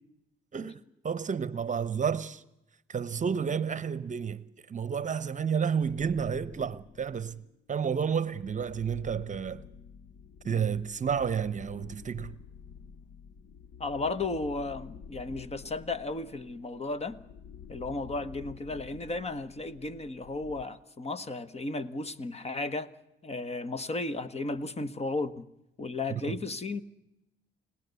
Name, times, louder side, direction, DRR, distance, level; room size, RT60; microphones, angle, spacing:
voice 1, 0.5-2.4 2.9-7.4 7.7-9.6 10.4-12.3 26.1-26.3, right 7 dB, 40° right, 0.9 m, -31 dB
sound 1, 5.8-7.5 8.1-20.7, left 7 dB, 60° left, 0.8 m, -49 dB
voice 2, 13.8-17.2 17.7-22.9 23.2-25.5 25.8-26.8, left 2 dB, 30° left, 1.4 m, -34 dB
30.0 x 17.0 x 8.2 m
cardioid pair, 90°, 20 cm